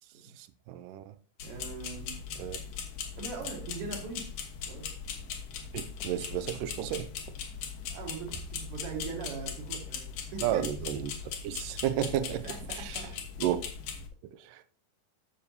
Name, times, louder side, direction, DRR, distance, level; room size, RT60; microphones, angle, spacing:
voice 1, 0.4-1.1 2.4-2.6 5.7-7.1 10.4-11.1 11.4-12.5 12.7-13.0 13.4-13.7 14.3-14.7, right 11 dB, 80° right, 1.9 m, -32 dB
sound 1, 1.4-14.1, left 7 dB, 70° left, 2.8 m, -39 dB
voice 2, 1.4-2.2 3.2-4.3 4.7-4.9 7.9-10.7 12.4-13.2, right 5 dB, 55° right, 1.8 m, -41 dB
sound 2, 8.3-9.5 10.5-11.8, right 1 dB, 90° left, 3.6 m, -50 dB
13.0 x 6.8 x 2.8 m
omnidirectional pair, 4.3 m